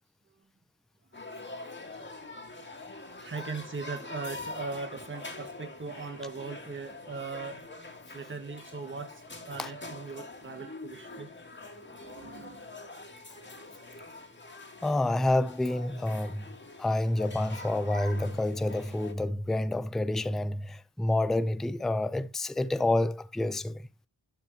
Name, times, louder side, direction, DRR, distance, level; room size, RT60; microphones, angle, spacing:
sound 1, 1.1-19.1, left 2 dB, 25° left, 2.3 m, -45 dB
voice 1, 1.7-2.4 3.2-7.7 8.1-11.3 11.8-12.8, right 4 dB, 30° right, 1.5 m, -40 dB
voice 2, 14.8-23.9, left 1 dB, ahead, 0.4 m, -28 dB
12.0 x 5.5 x 3.2 m
wide cardioid pair, 105°, 42 cm